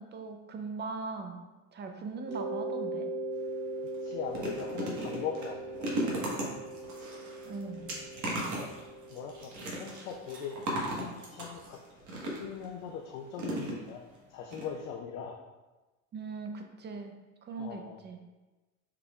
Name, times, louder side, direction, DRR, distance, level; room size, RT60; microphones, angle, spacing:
voice 1, 0.0-1.4 1.7-3.1 7.4-7.9 16.1-17.2 17.4-18.2, right 4 dB, 25° right, 5 dB, 0.6 m, -40 dB
Mallet percussion, 2.3-10.9, right 2 dB, 80° right, 1.2 m, -40 dB
sound 1, 3.3-3.5 3.9-12.7 13.4-14.2 14.5-14.6 14.9-15.0, right 1 dB, 45° right, 1.4 m, -37 dB
voice 2, 3.8-6.5 7.8-8.4 9.1-11.8 12.3-15.4 17.6-18.0, left 7 dB, 70° left, 1 dB, 0.6 m, -41 dB
5.8 x 3.3 x 2.4 m, 1.2 s
hypercardioid pair, 85°, 42 cm